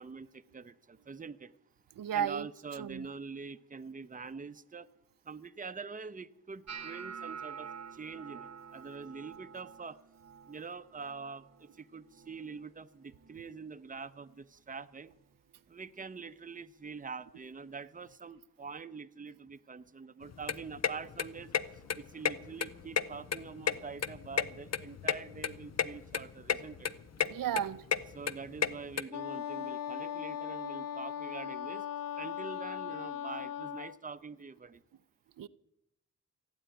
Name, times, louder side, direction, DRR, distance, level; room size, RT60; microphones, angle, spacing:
voice 1, 0.0-1.5 2.1-4.9 5.2-10.0 10.5-15.1 15.7-21.5 21.9-26.9 28.1-31.9 32.1-34.8, right 5 dB, 25° right, 0.7 m, -45 dB
voice 2, 2.0-2.5 2.8-3.1 27.3-27.8 35.4-35.5, right 9 dB, 80° right, 0.5 m, -33 dB
sound 1, 6.7-12.8 13.0-13.6 13.9-14.4 15.1-15.3 17.0-17.1, right 7 dB, 50° right, 0.9 m, -48 dB
sound 2, 20.2-29.0, left 8 dB, 50° left, 0.7 m, -33 dB
Wind instrument woodwind instrument, 29.1-34.0, left 10 dB, 85° left, 0.5 m, -39 dB
15.0 x 8.9 x 9.1 m
cardioid pair, 70°, 33 cm